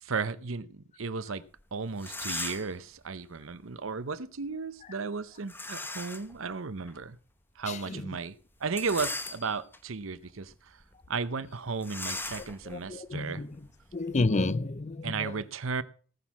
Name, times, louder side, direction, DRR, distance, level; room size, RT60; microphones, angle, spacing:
voice 1, 0.0-1.4 1.7-7.2 7.6-10.8 11.1-13.4 15.0-15.8, right 4 dB, 75° right, 0.8 m, -35 dB
sound 1, 1.6-1.7 1.9-2.8 5.5-6.3 6.9-7.0 8.6-9.8 10.3-10.5 10.8-10.9 11.8-14.3, left 2 dB, 10° left, 1.1 m, -38 dB
voice 2, 7.7-8.2 12.4-13.6 13.9-15.4, left 2 dB, 35° left, 0.6 m, -31 dB
18.0 x 6.4 x 6.1 m
head